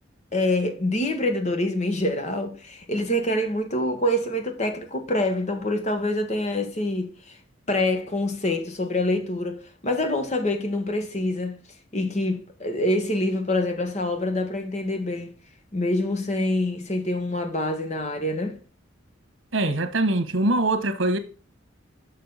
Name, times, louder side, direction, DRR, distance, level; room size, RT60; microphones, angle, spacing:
voice 1, 0.3-7.4 7.7-11.6 11.9-15.3 15.7-18.6, left 1 dB, 35° left, 1.3 m, -26 dB
voice 2, 19.5-21.2, right 2 dB, 85° right, 1.3 m, -23 dB
6.7 x 6.2 x 4.0 m
head